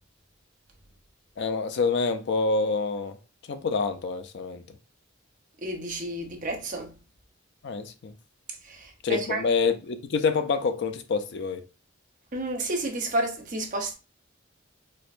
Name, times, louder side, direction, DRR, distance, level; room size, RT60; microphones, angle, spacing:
voice 1, 1.4-3.2 3.5-4.6 7.6-8.1 9.0-11.6, left 4 dB, 55° left, 0.4 m, -27 dB
voice 2, 5.6-6.9 8.6-9.4 12.3-13.9, right 2 dB, 40° right, 0.7 m, -31 dB
4.4 x 2.1 x 2.5 m
head